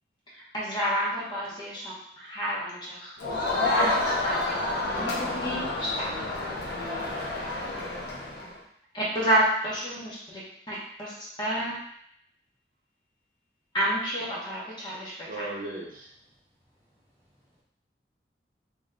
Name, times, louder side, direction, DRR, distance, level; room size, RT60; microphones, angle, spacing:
voice 1, 0.3-3.1 3.5-4.5 5.0-6.1 7.1-7.4 8.9-10.4 10.7-11.7 13.7-15.5, equal, 25° left, 1.3 m, -30 dB
Crowd, 3.2-8.5, left 2 dB, 80° left, 1.0 m, -29 dB
voice 2, 15.3-16.1, right 2 dB, 50° right, 0.9 m, -36 dB
voice 3, 16.3-17.6, equal, 15° right, 0.7 m, -68 dB
3.6 x 3.1 x 3.7 m
head